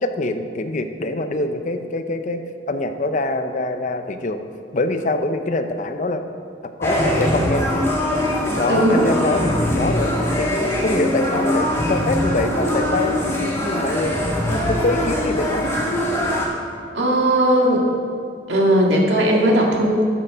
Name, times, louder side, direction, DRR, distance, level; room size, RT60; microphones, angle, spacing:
voice 1, 0.0-2.4 2.7-4.4 4.7-6.2 6.8-7.6 8.6-14.2 14.5-15.7, left 2 dB, 45° left, 8 dB, 0.6 m, -24 dB
sound 1, 6.8-16.5, left 1 dB, 15° left, 1.6 m, -22 dB
voice 2, 8.7-9.0 16.9-17.9 18.5-20.0, right 1 dB, 80° right, -1 dB, 2.0 m, -17 dB
12.5 x 6.8 x 5.0 m, 2.4 s
head